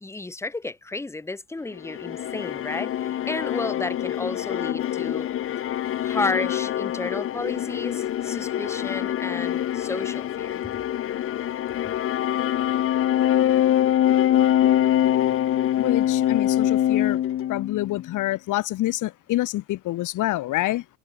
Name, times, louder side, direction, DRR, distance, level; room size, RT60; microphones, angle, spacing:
voice 1, 0.0-5.3 6.0-10.6, left 3 dB, 10° left, 0.7 m, -32 dB
sound 1, 1.8-18.1, left 12 dB, 45° left, 0.5 m, -24 dB
voice 2, 15.8-17.2 17.5-20.8, left 16 dB, 85° left, 1.0 m, -27 dB
cardioid pair, 90°, 30 cm